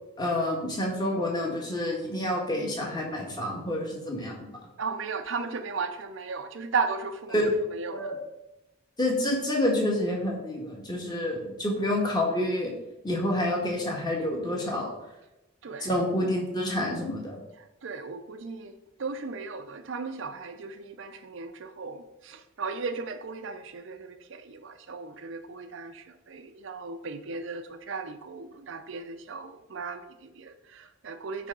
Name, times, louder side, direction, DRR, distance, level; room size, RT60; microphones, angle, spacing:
voice 1, 0.2-4.5 7.3-7.5 7.9-8.1 9.0-12.7 13.0-14.9 15.8-17.3, left 1 dB, 20° left, -1 dB, 1.4 m, -28 dB
voice 2, 4.8-7.4 7.7-8.1 15.6-15.9 17.6-31.5, right 4 dB, 60° right, 8 dB, 0.5 m, -36 dB
8.3 x 3.4 x 5.3 m, 0.96 s
head